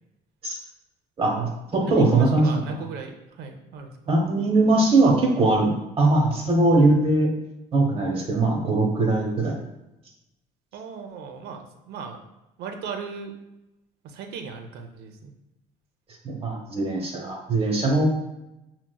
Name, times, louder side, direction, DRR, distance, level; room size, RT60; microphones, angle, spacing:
voice 1, 1.2-2.6 4.1-7.3 7.7-9.5 16.2-18.1, right 2 dB, 35° right, 0 dB, 0.8 m, -21 dB
voice 2, 1.8-3.9 10.7-12.2 12.6-13.3 14.0-15.3, right 5 dB, 75° right, 5 dB, 0.5 m, -37 dB
5.8 x 2.0 x 2.2 m, 0.92 s
cardioid pair, 110°, 17 cm